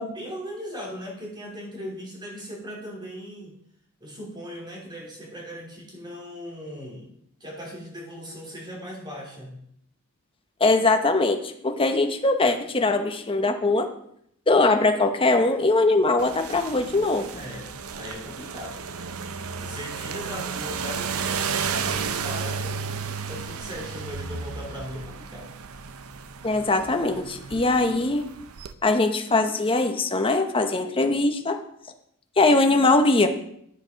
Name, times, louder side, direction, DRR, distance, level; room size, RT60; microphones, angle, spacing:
voice 1, 0.0-3.5 4.0-7.1 7.4-9.6 17.3-18.9 19.6-25.5, equal, 20° right, -1 dB, 3.0 m, -39 dB
voice 2, 10.6-13.9 14.5-17.3 26.4-28.2 28.8-31.6 32.4-33.3, left 2 dB, 25° left, 5 dB, 1.0 m, -21 dB
sound 1, 16.2-28.7, right 6 dB, 75° right, 0.7 m, -33 dB
10.5 x 6.7 x 5.8 m, 0.71 s
head